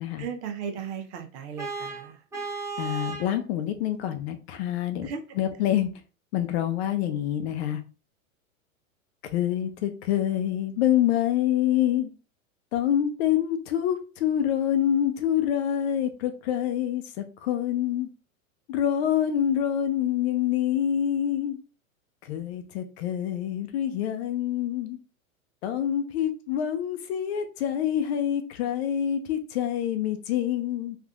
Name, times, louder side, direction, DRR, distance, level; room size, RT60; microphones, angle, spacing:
voice 1, 0.2-2.2 5.0-5.2, right 7 dB, 50° right, 6 dB, 0.8 m, -36 dB
Vehicle horn car horn honking, 1.6-3.3, right 4 dB, 5° right, 0.7 m, -34 dB
voice 2, 2.8-5.1 5.3-5.9 6.3-7.8 9.2-12.1 12.7-18.1 18.7-21.6 22.2-25.0 25.6-31.0, left 10 dB, 50° left, 7 dB, 0.6 m, -26 dB
3.5 x 2.5 x 2.4 m, 0.33 s
hypercardioid pair, 105°, 42 cm